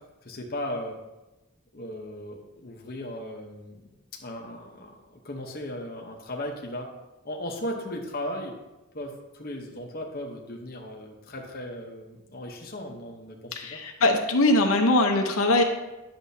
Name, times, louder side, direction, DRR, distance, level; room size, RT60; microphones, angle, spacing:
voice 1, 0.2-1.0 1.7-6.9 7.2-8.5 8.9-13.8, left 1 dB, 45° left, 1 dB, 0.9 m, -37 dB
voice 2, 13.5-15.6, left 2 dB, 80° left, 3 dB, 0.9 m, -21 dB
10.0 x 6.9 x 2.8 m, 1.0 s
head